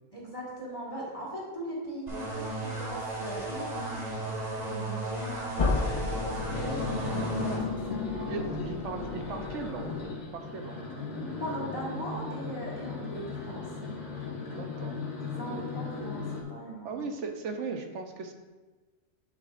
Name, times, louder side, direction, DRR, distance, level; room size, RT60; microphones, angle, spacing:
voice 1, 0.1-8.5 8.8-9.1 11.1-13.6 15.2-17.0, right 1 dB, 25° left, -5 dB, 1.8 m, -40 dB
sound 1, 2.1-7.6, right 2 dB, 30° right, 1.9 m, -35 dB
sound 2, 5.6-10.3, left 3 dB, 50° left, 0.4 m, -34 dB
sound 3, 6.5-16.4, left 4 dB, 90° left, 1.8 m, -36 dB
voice 2, 8.3-9.9 10.3-10.8 14.6-14.9 15.5-15.6 16.8-18.3, right 4 dB, 70° right, 5 dB, 1.1 m, -37 dB
9.1 x 7.1 x 2.5 m, 1.3 s
omnidirectional pair, 1.3 m